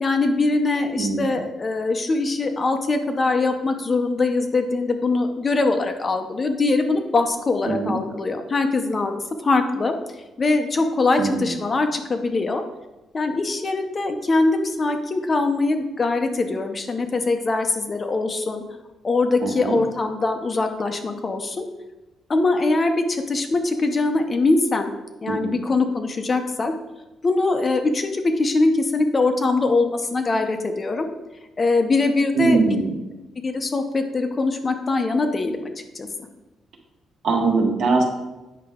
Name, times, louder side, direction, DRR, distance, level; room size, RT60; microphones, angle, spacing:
voice 1, 0.0-9.1 9.4-9.9 10.4-12.6 13.1-18.6 19.0-21.6 22.3-24.9 25.2-26.7 27.2-31.1 31.6-32.6 33.4-36.1, left 3 dB, 25° left, 6 dB, 0.6 m, -22 dB
voice 2, 1.0-1.4 7.7-7.9 11.2-11.5 19.4-19.8 25.3-25.5 32.3-33.0 37.2-38.0, right 3 dB, 55° right, 2 dB, 1.3 m, -22 dB
8.6 x 5.7 x 3.6 m, 1.1 s
cardioid pair, 170°, 0 cm